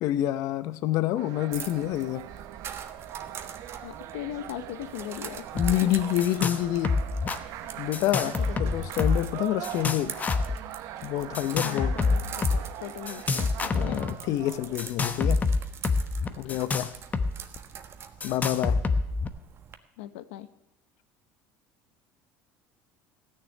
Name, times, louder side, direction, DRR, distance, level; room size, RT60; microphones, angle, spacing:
voice 1, 0.0-2.3 5.5-7.0 7.8-10.1 11.0-12.0 13.7-15.4 16.4-16.9 18.2-18.8, left 13 dB, 65° left, 14 dB, 0.8 m, -28 dB
sound 1, 1.2-14.9, right 12 dB, 65° right, 1.1 m, -41 dB
sound 2, 1.5-19.7, right 7 dB, 40° right, 1.3 m, -44 dB
voice 2, 3.8-5.4 6.4-6.5 8.4-8.7 11.6-14.0 16.3-16.6 20.0-20.5, left 13 dB, 90° left, 13 dB, 0.9 m, -39 dB
sound 3, 5.6-5.7 6.0-6.6 6.8-7.4 7.9-9.3 9.6-10.6 11.3-12.6 13.1-14.1 14.8-17.3 17.6-17.7 18.2-19.3, left 4 dB, 25° left, 1.0 m, -26 dB
14.5 x 6.8 x 9.9 m, 0.88 s
supercardioid pair, 105°, 6 cm